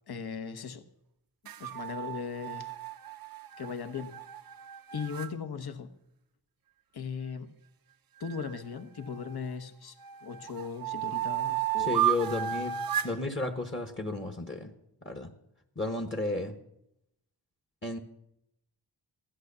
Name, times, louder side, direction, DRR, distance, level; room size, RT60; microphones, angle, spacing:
voice 1, 0.1-0.9 1.6-2.7 3.6-4.1 4.9-5.9 6.9-7.5 8.2-9.9 10.2-12.0 13.0-13.1, left 6 dB, 60° left, 8 dB, 1.1 m, -38 dB
sound 1, 1.5-5.3 8.2-9.5 10.0-13.2, right 11 dB, 55° right, 0.6 m, -33 dB
voice 2, 11.8-12.7 13.0-14.7 15.0-15.3 15.8-16.5 17.8-18.0, left 2 dB, 30° left, 6 dB, 1.2 m, -33 dB
16.0 x 11.5 x 6.8 m, 0.81 s
wide cardioid pair, 135°, 41 cm